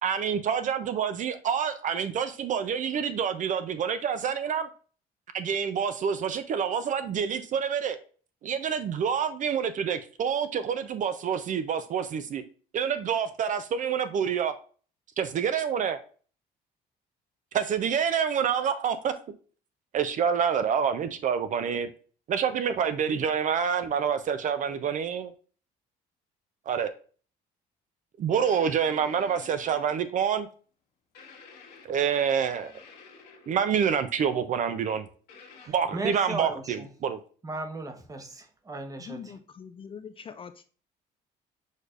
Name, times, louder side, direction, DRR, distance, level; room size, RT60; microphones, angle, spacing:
voice 1, 0.0-4.7 5.3-8.0 8.4-12.4 12.7-14.5 15.2-16.0 17.5-19.1 19.9-21.9 22.3-25.3 26.7-26.9 28.2-30.5 31.8-32.7 33.5-35.1 35.7-37.2, right 7 dB, 50° right, 0.5 m, -27 dB
sound 1, 28.3-30.2 31.1-33.8 35.3-35.7, left 5 dB, 75° left, 1.5 m, -51 dB
voice 2, 35.6-36.9 37.4-39.3, right 2 dB, 20° right, 0.9 m, -37 dB
voice 3, 39.0-40.6, left 7 dB, 30° left, 0.4 m, -43 dB
6.4 x 3.3 x 2.4 m
cardioid pair, 110°, 17 cm